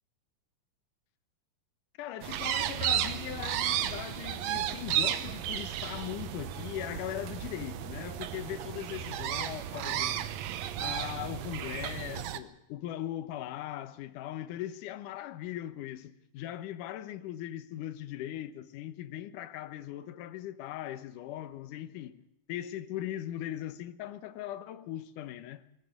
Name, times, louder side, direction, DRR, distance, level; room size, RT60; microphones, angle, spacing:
voice 1, 2.0-10.3 10.8-22.2 22.5-25.6, left 12 dB, 70° left, 2.3 m, -39 dB
sound 1, 2.2-12.4, right 11 dB, 75° right, 1.6 m, -33 dB
Bowed string instrument, 2.8-9.1, equal, 60° right, 2.5 m, -50 dB
20.0 x 14.0 x 9.7 m
omnidirectional pair, 4.1 m